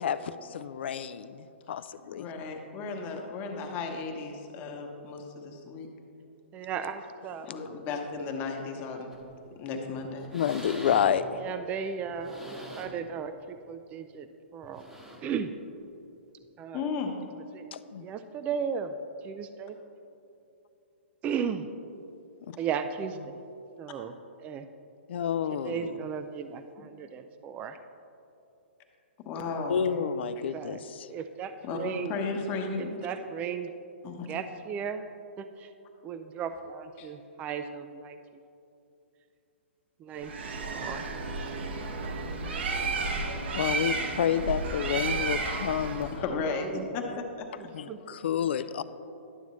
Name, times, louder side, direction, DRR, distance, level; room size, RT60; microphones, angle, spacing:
voice 1, 0.0-2.3 10.3-11.4 17.7-18.1 22.5-22.6 25.1-26.0 29.7-31.1 43.6-46.2 47.7-48.8, left 8 dB, 65° left, 13 dB, 0.4 m, -29 dB
voice 2, 2.2-5.9 7.5-9.1 9.6-10.4 16.7-17.2 26.8-26.9 29.2-29.8 31.6-33.0 34.0-34.3 37.0-37.1 42.6-42.7 46.2-47.7, left 4 dB, 30° left, 3 dB, 1.0 m, -35 dB
voice 3, 6.5-7.5 11.4-14.9 15.2-15.5 16.6-16.9 17.5-17.7 18.0-18.9 19.2-19.8 21.2-21.7 22.6-23.4 23.8-24.7 25.5-27.8 30.5-30.8 31.1-32.2 32.8-33.7 34.3-35.1 35.4-35.7 36.0-38.2 40.0-40.3 40.7-41.1 42.7-43.5 46.5-47.2 47.6-48.2, right 7 dB, 20° right, 9 dB, 0.3 m, -36 dB
sound 1, 9.1-9.4 9.8-10.0 10.2-11.3 12.0-13.1 13.6-13.7 14.6-15.4 16.4-16.5, right 1 dB, 5° right, 0.9 m, -44 dB
Bird, 40.2-46.2, right 3 dB, 65° right, 0.9 m, -32 dB
11.0 x 7.1 x 3.1 m, 2.7 s
hypercardioid pair, 125°, 6 cm